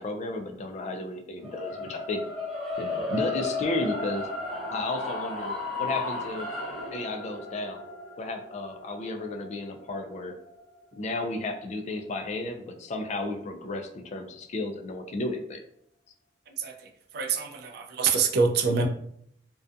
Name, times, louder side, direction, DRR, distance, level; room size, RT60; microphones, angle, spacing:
voice 1, 0.0-2.2 2.8-4.3 4.7-5.5 5.8-6.5 6.9-7.9 8.2-10.3 11.0-15.6, left 2 dB, 40° left, 5 dB, 0.3 m, -33 dB
sound 1, 1.4-11.6, left 3 dB, ahead, 0.9 m, -34 dB
voice 2, 17.1-18.9, right 5 dB, 60° right, 5 dB, 0.3 m, -25 dB
2.6 x 2.2 x 2.4 m, 0.70 s
head